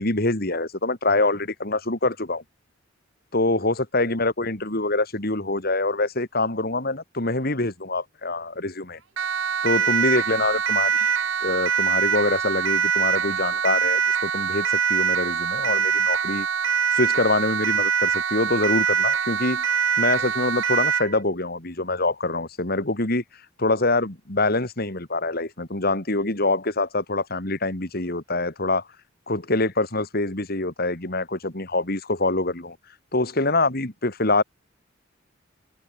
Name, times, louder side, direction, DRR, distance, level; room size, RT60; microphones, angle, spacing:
voice 1, 0.0-2.4 3.3-9.0 9.6-10.9 11.4-16.5 16.9-19.7 20.0-23.2 23.6-28.8 29.3-32.8 33.1-34.4, left 2 dB, 50° left, 3.3 m, -25 dB
Siren, 9.2-21.1, right 7 dB, 80° right, 1.5 m, -23 dB
head